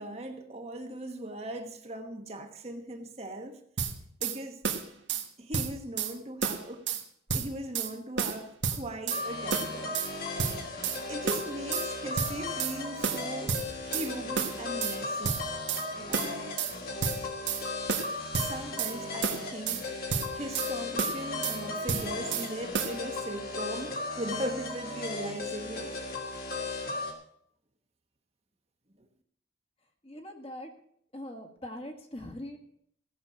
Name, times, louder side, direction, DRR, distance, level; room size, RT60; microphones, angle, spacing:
voice 1, 0.0-3.6 4.2-4.6 5.4-6.9 7.3-10.0 11.1-15.4 16.1-16.6 18.3-26.0, right 1 dB, 35° right, 5 dB, 1.1 m, -39 dB
sound 1, 3.8-4.4 4.6-5.3 5.5-6.1 6.4-7.0 7.3-7.9 8.2-9.2 9.5-10.1 10.4-11.0 11.3-11.9 12.2-12.8 13.0-14.1 14.4-15.0 15.2-15.8 16.1-16.7 17.0-17.6 17.9-18.9 19.2-19.8 20.1-20.7 21.0-21.6 21.9-22.5 22.7-23.0, right 6 dB, 75° right, 1.5 m, -31 dB
sound 2, 9.1-27.1, left 3 dB, 50° left, 2.4 m, -36 dB
voice 2, 30.0-30.7 31.1-32.6, left 1 dB, 30° left, 4 dB, 1.6 m, -41 dB
16.5 x 6.4 x 7.5 m, 0.67 s
head